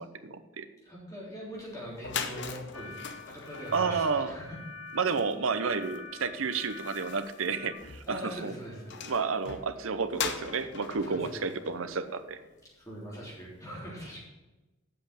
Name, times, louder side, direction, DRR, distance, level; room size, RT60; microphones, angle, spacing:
voice 1, 0.0-0.6 3.7-4.3 5.0-8.5 9.1-12.4, right 5 dB, 70° right, 11 dB, 0.7 m, -31 dB
voice 2, 0.8-4.6 8.1-9.0 11.0-11.4 12.8-14.2, equal, 15° left, -5 dB, 3.3 m, -42 dB
sound 1, 1.6-1.7 1.9-12.7, left 6 dB, 60° left, 0.8 m, -41 dB
sound 2, 2.7-7.7, left 4 dB, 85° left, 1.4 m, -46 dB
7.6 x 6.3 x 8.0 m, 1.1 s
head